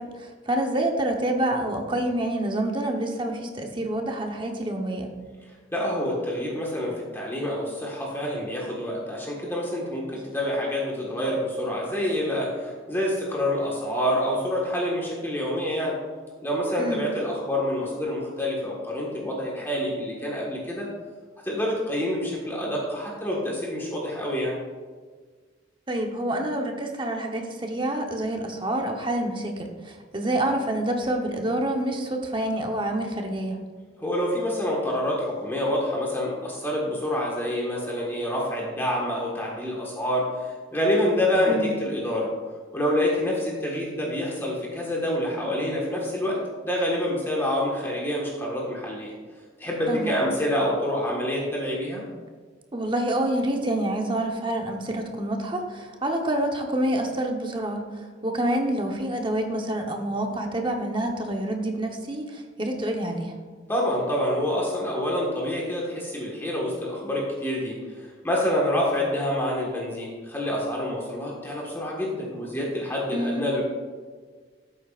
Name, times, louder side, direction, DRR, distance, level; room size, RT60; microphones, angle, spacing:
voice 1, 0.0-5.1 16.8-17.0 25.9-33.6 41.5-41.7 49.9-50.2 52.7-63.3 73.1-73.5, right 1 dB, 25° right, 2 dB, 1.0 m, -27 dB
voice 2, 5.7-16.0 16.4-20.9 21.4-24.5 34.0-42.3 42.7-49.1 49.6-52.1 63.7-73.6, left 1 dB, 10° left, -3 dB, 1.5 m, -27 dB
12.5 x 8.8 x 2.5 m, 1.5 s
head